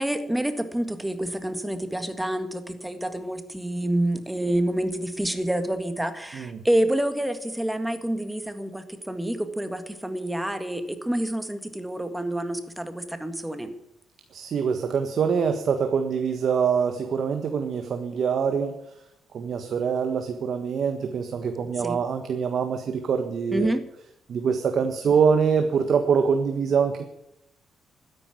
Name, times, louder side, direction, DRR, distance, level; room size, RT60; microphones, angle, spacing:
voice 1, 0.0-13.7 21.8-22.0 23.5-23.8, right 1 dB, 5° right, 8 dB, 1.8 m, -28 dB
voice 2, 14.3-18.7 19.3-23.7 24.3-27.0, right 6 dB, 55° right, 6 dB, 1.5 m, -24 dB
12.5 x 10.5 x 9.6 m, 0.82 s
cardioid pair, 110°, 0 cm